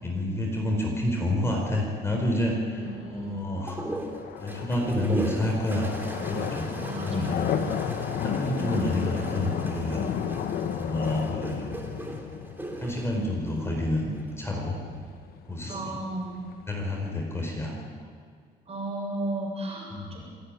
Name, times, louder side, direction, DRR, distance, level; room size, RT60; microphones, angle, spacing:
voice 1, 0.0-2.8 3.1-3.8 4.4-5.9 6.2-7.5 8.2-10.0 10.7-11.8 12.8-14.8 15.5-15.9 16.7-17.8 19.9-20.2, left 1 dB, 15° left, 0 dB, 4.6 m, -29 dB
voice 2, 2.7-3.4 6.8-7.9 15.7-16.4 18.7-20.2, right 2 dB, 35° right, -1 dB, 7.4 m, -35 dB
sound 1, 2.9-16.8, left 8 dB, 65° left, 1.5 m, -34 dB
sound 2, 3.7-14.3 15.5-16.1, right 1 dB, 10° right, 3.2 m, -39 dB
27.0 x 10.5 x 9.9 m, 2.1 s
cardioid pair, 110°, 17 cm